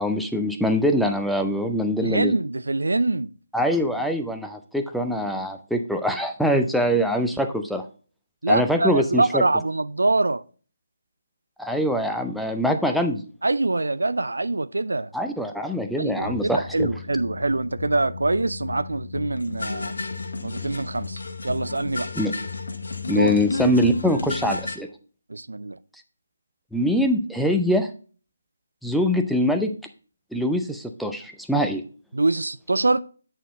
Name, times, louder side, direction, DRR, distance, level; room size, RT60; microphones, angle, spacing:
voice 1, 0.0-2.3 3.5-7.8 8.5-9.4 11.6-13.2 15.1-16.9 22.2-22.3 23.1-24.9 26.7-27.9 28.8-29.7 30.3-31.8, equal, ahead, 0.5 m, -23 dB
voice 2, 2.0-3.3 8.4-10.4 13.4-15.1 16.0-19.9 20.4-21.2 21.4-22.1 23.1-23.4 25.3-25.8 32.1-33.0, right 2 dB, 70° right, 0.4 m, -24 dB
sound 1, 16.2-24.8, left 3 dB, 60° left, 1.0 m, -32 dB
9.1 x 4.4 x 4.0 m
figure-of-eight pair, 150°, 0 cm